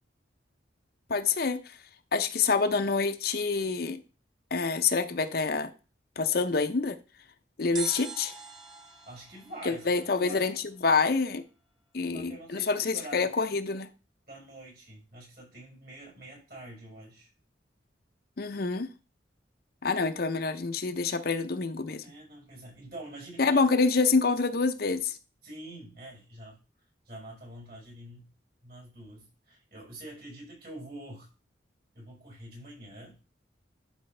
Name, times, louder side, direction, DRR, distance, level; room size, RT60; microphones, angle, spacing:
voice 1, 1.1-1.8 2.1-4.0 4.5-5.7 6.2-7.0 7.6-8.3 9.7-10.5 10.8-11.4 11.9-13.9 18.4-18.9 19.8-22.0 23.4-25.2, left 4 dB, 55° left, 0.6 m, -27 dB
sound 1, 7.8-10.8 11.1-11.2, right 4 dB, 20° right, 1.5 m, -43 dB
voice 2, 9.0-10.5 12.1-13.4 14.3-17.3 22.0-23.6 25.4-26.6 27.0-28.2 28.6-31.3 31.9-33.2, right 1 dB, 55° right, 4.9 m, -46 dB
11.5 x 5.1 x 3.3 m
head